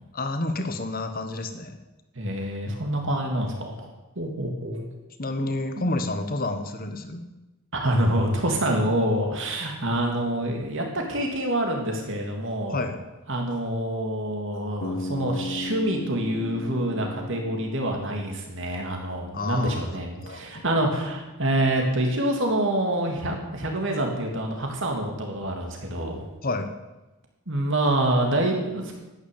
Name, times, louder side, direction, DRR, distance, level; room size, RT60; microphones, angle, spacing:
voice 1, 0.1-1.8 5.2-7.2 12.7-13.0 19.3-20.6 26.4-26.7, left 2 dB, 40° left, 8 dB, 1.3 m, -30 dB
voice 2, 2.1-3.9 4.1-4.8 5.8-5.9 7.7-12.8 13.3-26.2 27.5-28.9, right 1 dB, 55° right, 1 dB, 3.0 m, -26 dB
Bass guitar, 14.8-18.8, left 2 dB, 90° left, 1.1 m, -36 dB
11.5 x 9.7 x 8.7 m, 1.1 s
head